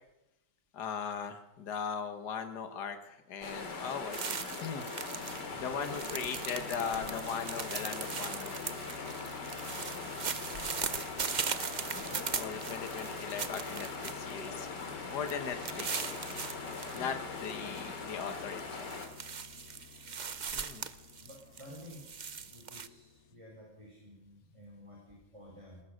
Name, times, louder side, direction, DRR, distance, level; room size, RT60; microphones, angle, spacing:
voice 1, 0.7-4.9 5.6-8.6 12.4-16.5 16.9-18.9 20.5-20.9, left 7 dB, 70° left, 8 dB, 1.9 m, -39 dB
sound 1, 3.4-19.1, left 4 dB, 85° left, 3.1 m, -41 dB
sound 2, 4.1-5.4 5.7-14.5 14.8-14.9 15.3-17.0 17.4-17.9 18.3-22.9, right 6 dB, 45° right, 0.6 m, -39 dB
sound 3, 5.1-23.3, left 8 dB, 50° left, 1.0 m, -52 dB
voice 2, 21.2-22.0 22.3-25.8, left 1 dB, 15° right, -2 dB, 5.0 m, -52 dB
21.5 x 19.5 x 6.5 m, 0.92 s
omnidirectional pair, 1.8 m